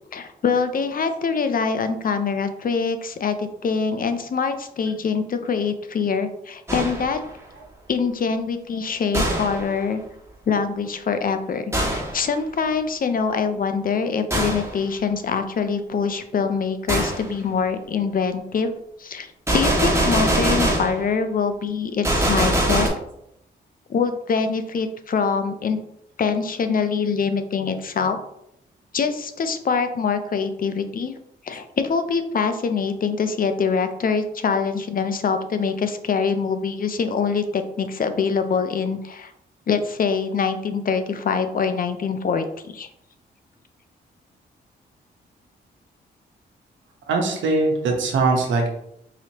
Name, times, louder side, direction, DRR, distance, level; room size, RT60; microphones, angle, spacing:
voice 1, 0.1-7.2 7.9-10.0 10.5-18.7 19.0-22.9 23.9-25.8 26.2-28.2 28.9-31.1 31.4-39.3 39.7-42.9, left 5 dB, 50° left, 9 dB, 0.5 m, -24 dB
Gunshot gunfire, 6.7-7.2 9.1-9.7 11.7-12.2 14.3-14.7 16.9-17.2 19.5-21.0 22.0-22.9, right 1 dB, 15° right, 1.4 m, -22 dB
voice 2, 47.1-48.7, right 3 dB, 85° right, 2 dB, 0.9 m, -21 dB
4.9 x 2.9 x 2.8 m, 0.77 s
cardioid pair, 70°, 19 cm